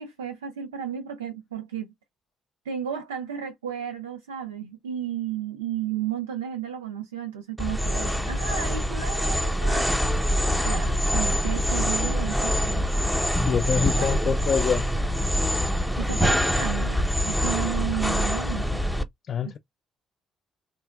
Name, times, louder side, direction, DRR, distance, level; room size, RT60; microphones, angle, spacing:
voice 1, 0.0-1.9 2.6-10.1 10.6-12.9 13.4-14.2 16.0-18.9 19.5-19.6, right 9 dB, 85° right, 0.4 m, -33 dB
sound 1, 7.6-19.0, equal, ahead, 0.6 m, -25 dB
voice 2, 13.4-14.9 19.3-19.6, left 7 dB, 50° left, 0.4 m, -25 dB
3.4 x 2.5 x 2.2 m
figure-of-eight pair, 45°, 0 cm